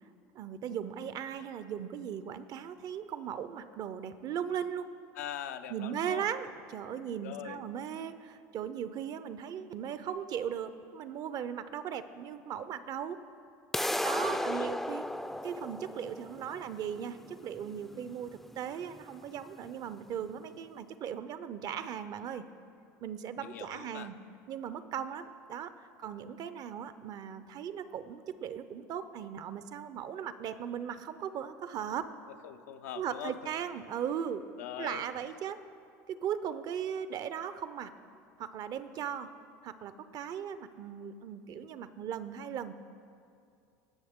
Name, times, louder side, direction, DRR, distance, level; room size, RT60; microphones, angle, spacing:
voice 1, 0.3-4.9 5.7-13.2 14.0-15.0 15.3-22.5 23.0-24.2 24.5-32.1 32.9-34.5 34.8-35.6 36.1-37.9 38.4-39.3 39.6-42.7, right 8 dB, 50° right, 13 dB, 0.5 m, -38 dB
voice 2, 5.2-6.3 7.2-7.6 14.1-14.7 23.4-24.1 32.4-33.3 34.6-35.0, left 10 dB, 85° left, 9 dB, 0.5 m, -42 dB
sound 1, 13.7-19.7, left 1 dB, 5° left, 0.3 m, -36 dB
18.5 x 6.4 x 3.6 m, 2.4 s
hypercardioid pair, 90°, 8 cm